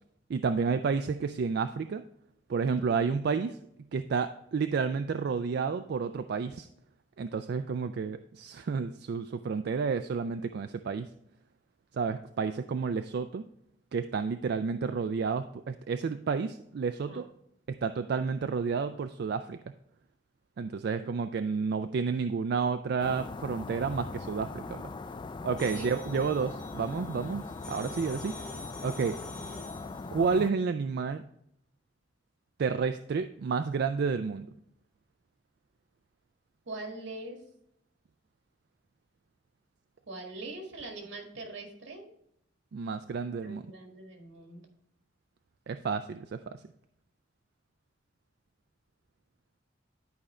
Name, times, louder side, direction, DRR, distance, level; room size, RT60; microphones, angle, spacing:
voice 1, 0.3-2.0 2.5-3.6 3.9-6.7 7.2-11.1 11.9-13.4 13.9-17.3 17.7-19.6 20.6-24.8 25.4-27.4 27.7-28.4 28.8-29.2 30.1-31.2 32.6-34.5 42.7-43.6 45.7-46.6, right 5 dB, 60° right, 9 dB, 0.3 m, -30 dB
sound 1, 23.0-30.5, left 3 dB, 25° left, 0.3 m, -40 dB
sound 2, 25.6-30.0, left 2 dB, 5° left, 1.0 m, -47 dB
voice 2, 36.7-37.4 40.1-42.1 43.4-44.7, right 2 dB, 80° right, 2 dB, 1.9 m, -42 dB
11.0 x 4.9 x 3.2 m, 0.73 s
head